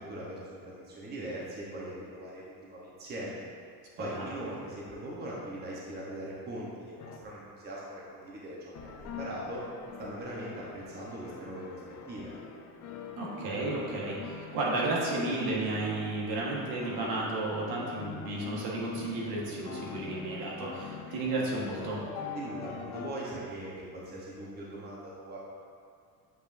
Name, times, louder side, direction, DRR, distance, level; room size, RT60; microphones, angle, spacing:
voice 1, 0.0-3.4 4.0-8.6 8.8-9.6 10.0-11.8 12.1-12.4 21.1-21.2 22.3-25.4, right 1 dB, 25° right, -5 dB, 1.0 m, -40 dB
sound 1, 7.0-7.2 8.7-23.1, left 6 dB, 45° left, 0.5 m, -44 dB
voice 2, 13.2-22.0, right 2 dB, 70° right, -4 dB, 1.5 m, -33 dB
7.9 x 5.1 x 2.6 m, 2.3 s
cardioid pair, 155°, 38 cm